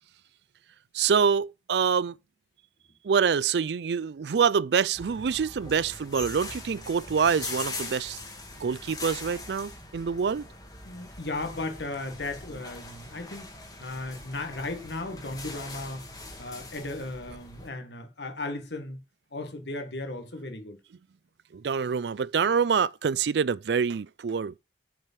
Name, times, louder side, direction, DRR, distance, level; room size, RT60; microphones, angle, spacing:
voice 1, 0.9-2.2 3.0-8.2 8.6-10.5 21.5-24.6, right 6 dB, 75° right, 0.4 m, -26 dB
sound 1, 4.9-17.7, left 2 dB, 20° left, 1.7 m, -42 dB
voice 2, 10.8-13.5 13.8-16.1 16.4-19.0 19.3-20.8, left 2 dB, 80° left, 1.7 m, -36 dB
7.6 x 5.0 x 7.3 m
head